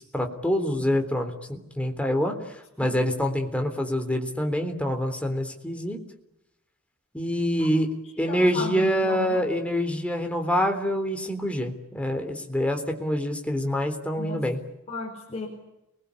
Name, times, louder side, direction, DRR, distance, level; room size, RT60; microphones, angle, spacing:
voice 1, 0.0-2.4 2.8-6.0 7.1-14.6, equal, 5° left, 4 dB, 3.7 m, -26 dB
voice 2, 8.3-9.4 14.2-14.4 14.9-15.5, left 1 dB, 30° left, -1 dB, 5.2 m, -35 dB
30.0 x 21.0 x 8.5 m, 0.90 s
head